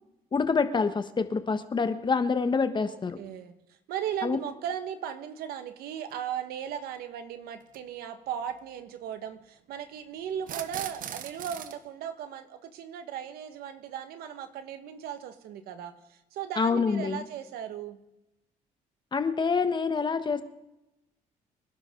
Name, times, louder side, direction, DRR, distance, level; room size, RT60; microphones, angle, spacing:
voice 1, 0.3-3.2 4.2-4.4 16.6-17.2 19.1-20.4, left 5 dB, 30° left, 9 dB, 1.3 m, -26 dB
voice 2, 2.7-18.0, right 9 dB, 80° right, 8 dB, 1.7 m, -37 dB
sound 1, 6.1-6.2 7.6-7.8 10.4-11.8, right 9 dB, 60° right, 1.1 m, -39 dB
25.5 x 11.5 x 3.9 m, 0.91 s
cardioid pair, 95°, 15 cm